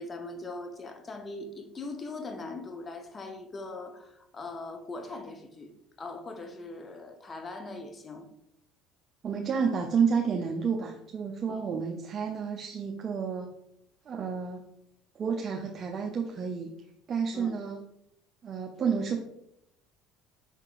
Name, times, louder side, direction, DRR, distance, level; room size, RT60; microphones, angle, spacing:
voice 1, 0.0-5.7 6.0-8.3 11.5-11.6 17.3-17.5, left 2 dB, 30° left, 5 dB, 0.7 m, -40 dB
voice 2, 9.2-13.5 14.1-14.6 15.1-16.7 17.1-17.8 18.4-19.2, right 6 dB, 40° right, 0 dB, 0.5 m, -30 dB
5.5 x 3.7 x 2.4 m, 0.78 s
hypercardioid pair, 75°, 0 cm